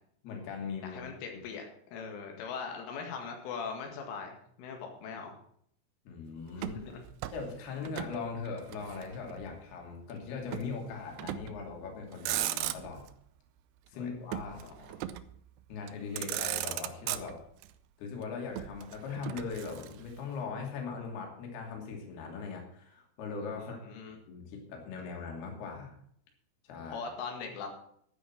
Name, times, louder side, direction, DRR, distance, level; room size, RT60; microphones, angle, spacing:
voice 1, 0.2-1.0 1.3-1.4 6.1-6.8 7.3-13.0 13.9-14.6 15.7-17.4 18.0-23.9 24.3-26.0 26.6-27.0, left 5 dB, 60° left, 1 dB, 4.4 m, -40 dB
voice 2, 0.8-1.6 1.9-5.3 6.6-7.0 13.9-14.1 14.6-15.0 23.6-24.2 26.9-27.7, left 5 dB, 85° left, 2 dB, 4.4 m, -41 dB
Motor vehicle (road), 6.6-8.2 8.5-9.5 10.5-10.7 11.2-11.6 12.1-13.1 14.3-15.4 15.9-16.0 16.2-17.7 18.5-20.2, right 14 dB, 80° right, 2.5 m, -37 dB
12.5 x 9.7 x 6.0 m, 0.66 s
omnidirectional pair, 5.5 m